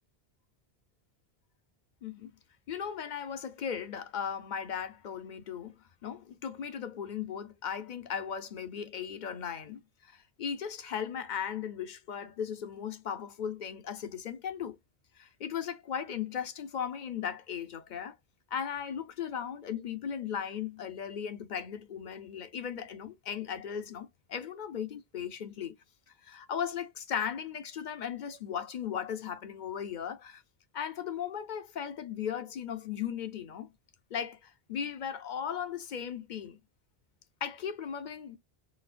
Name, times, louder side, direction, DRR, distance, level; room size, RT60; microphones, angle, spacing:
voice 1, 2.0-2.3 2.7-5.7 6.0-14.8 15.2-18.2 18.5-25.7 26.2-30.4 30.7-33.7 34.1-36.6 37.4-38.4, left 8 dB, 55° left, 0.6 m, -37 dB
4.2 x 2.0 x 2.5 m
omnidirectional pair, 1.1 m